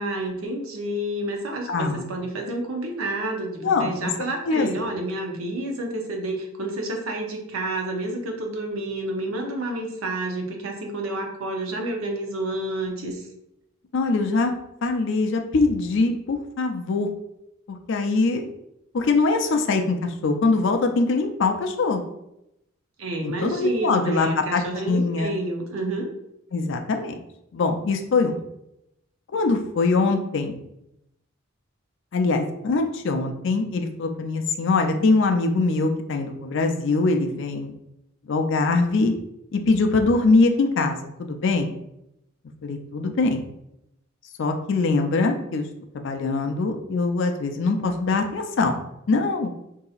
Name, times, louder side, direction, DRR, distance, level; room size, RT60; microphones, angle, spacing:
voice 1, 0.0-13.3 23.0-26.1, right 1 dB, 75° right, 2 dB, 0.7 m, -29 dB
voice 2, 1.7-2.2 3.6-4.1 4.4-4.7 13.9-14.5 14.8-17.1 17.7-18.5 18.9-22.0 23.2-25.3 26.5-27.2 27.5-28.4 29.3-30.6 32.1-37.7 38.3-39.1 39.5-41.7 42.6-43.5 44.4-45.6 45.9-48.8 49.1-49.5, left 3 dB, 60° left, 5 dB, 0.4 m, -23 dB
3.9 x 2.7 x 2.4 m, 0.83 s
head